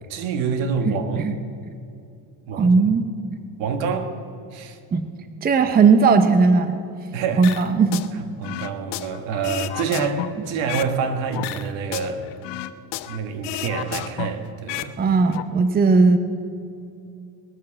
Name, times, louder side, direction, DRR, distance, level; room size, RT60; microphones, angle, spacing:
voice 1, 0.1-1.3 2.5-2.8 3.6-4.2 4.5-4.8 7.1-7.6 8.1-12.3 13.1-15.0, right 5 dB, 75° right, 7 dB, 1.7 m, -27 dB
voice 2, 2.5-3.0 4.9-5.0 5.4-6.8 7.4-8.0 15.0-16.2, right 4 dB, 20° right, 9 dB, 0.7 m, -17 dB
sound 1, 7.4-8.1 8.4-11.0 11.3-13.2 13.4-14.9 15.2-15.4, left 15 dB, 65° left, 0.8 m, -32 dB
20.5 x 7.4 x 7.3 m, 2.6 s
cardioid pair, 135°, 45 cm